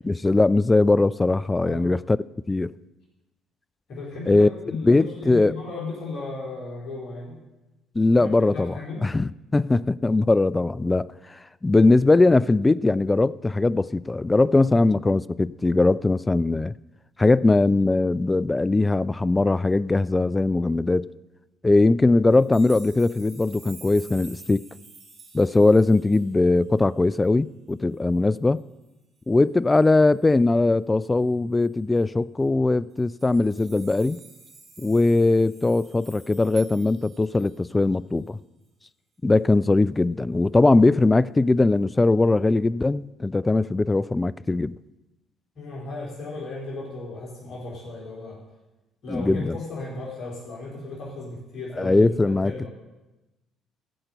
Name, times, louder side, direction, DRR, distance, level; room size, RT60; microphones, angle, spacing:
voice 1, 0.0-2.2 2.5-2.7 4.3-4.5 4.8-5.5 8.0-8.7 9.0-16.7 17.2-21.1 21.6-24.6 25.3-28.6 29.3-34.2 34.8-38.4 39.2-44.8 49.1-49.6 51.8-52.7, left 2 dB, 20° left, 0.3 m, -20 dB
voice 2, 3.9-7.4 8.2-9.1 45.6-48.4 49.0-52.7, left 3 dB, 50° left, 4.4 m, -35 dB
sound 1, 22.3-26.8 27.2-27.3 27.7-27.8 28.1-28.6 29.7-29.9 31.6-31.7 32.0-32.1 32.9-37.8 38.3-38.4, right 4 dB, 55° right, 4.4 m, -49 dB
15.0 x 5.9 x 7.9 m
hypercardioid pair, 50°, 0 cm